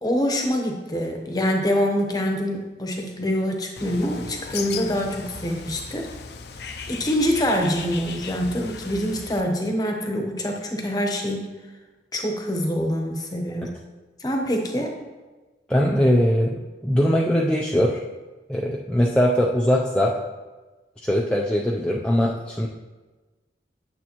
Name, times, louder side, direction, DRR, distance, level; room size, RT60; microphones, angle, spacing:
voice 1, 0.0-6.1 6.6-11.5 12.1-13.7 14.2-14.9, equal, 20° left, 2 dB, 0.9 m, -25 dB
Bird, 3.8-9.4, left 5 dB, 65° left, 0.5 m, -37 dB
voice 2, 15.7-18.0 18.5-20.1 21.0-22.7, equal, 5° left, -2 dB, 0.4 m, -21 dB
9.6 x 7.1 x 3.0 m, 1.2 s
head